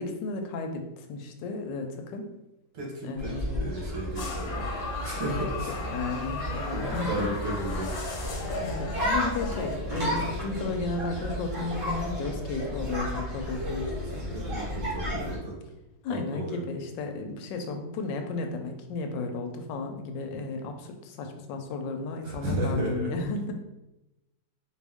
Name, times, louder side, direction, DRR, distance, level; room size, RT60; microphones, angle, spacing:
voice 1, 0.0-2.3 3.0-3.7 5.3-5.4 5.9-7.3 8.5-13.9 16.0-23.5, left 3 dB, 85° left, 5 dB, 1.3 m, -34 dB
voice 2, 2.7-4.6 5.0-5.9 6.7-7.9 14.0-15.6 16.1-16.6 22.2-23.1, right 1 dB, 65° right, -4 dB, 2.0 m, -34 dB
sound 1, 3.2-15.4, equal, 45° right, 1.6 m, -33 dB
sound 2, 4.2-9.8, left 3 dB, 65° left, 1.0 m, -36 dB
4.4 x 2.5 x 3.5 m, 0.97 s
omnidirectional pair, 1.9 m